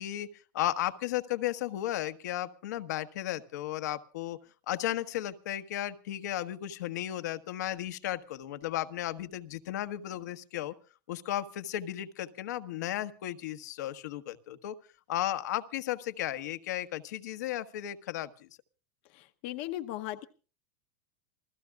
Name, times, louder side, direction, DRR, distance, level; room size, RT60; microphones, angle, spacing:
voice 1, 0.0-4.4 4.7-10.7 11.1-14.7 15.1-18.5, left 13 dB, 70° left, 9 dB, 1.4 m, -34 dB
voice 2, 19.1-20.3, left 14 dB, 40° left, 9 dB, 0.9 m, -37 dB
27.5 x 16.0 x 2.4 m, 0.36 s
supercardioid pair, 175°, 10 cm